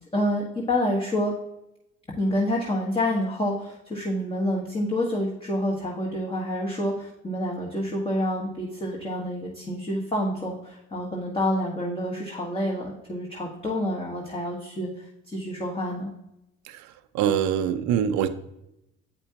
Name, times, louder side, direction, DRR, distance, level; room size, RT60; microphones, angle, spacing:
voice 1, 0.1-1.3 2.2-14.9 15.3-16.1, left 1 dB, 20° left, -2 dB, 1.4 m, -28 dB
voice 2, 17.1-18.3, right 9 dB, 75° right, 11 dB, 0.6 m, -24 dB
8.4 x 5.2 x 2.8 m, 0.86 s
supercardioid pair, 65°, 29 cm